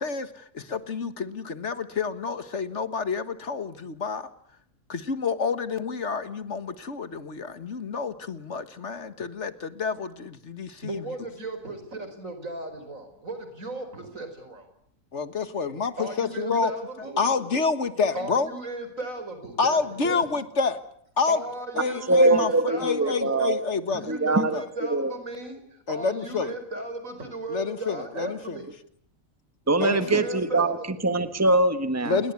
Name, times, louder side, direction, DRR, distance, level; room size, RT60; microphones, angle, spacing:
voice 1, 0.0-4.3 4.9-11.0 15.1-16.7 17.2-18.5 19.6-20.8 21.2-21.4 21.8-22.5 22.8-24.1 24.4-24.6 25.9-26.5 27.5-28.6 29.8-30.3 32.0-32.3, left 5 dB, 60° left, 12 dB, 1.7 m, -28 dB
voice 2, 10.8-14.7 16.0-17.2 18.1-20.2 21.3-23.4 23.9-28.7 29.8-30.8, right 2 dB, 75° right, 8 dB, 5.3 m, -36 dB
voice 3, 22.1-23.6 24.1-24.6 24.9-25.1 29.7-30.8 31.0-32.2, right 2 dB, 10° right, 10 dB, 1.5 m, -22 dB
29.0 x 21.5 x 8.4 m, 0.65 s
omnidirectional pair, 1.4 m